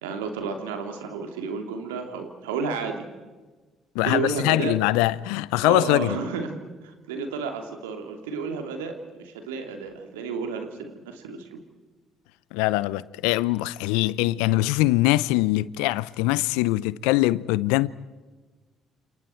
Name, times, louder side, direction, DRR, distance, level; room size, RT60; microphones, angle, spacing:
voice 1, 0.0-3.0 4.0-4.7 5.6-11.6, right 5 dB, 85° right, 2.9 m, -31 dB
voice 2, 3.9-6.2 12.5-17.9, left 18 dB, 80° left, 0.6 m, -22 dB
29.0 x 28.5 x 4.6 m
hypercardioid pair, 50°, 0 cm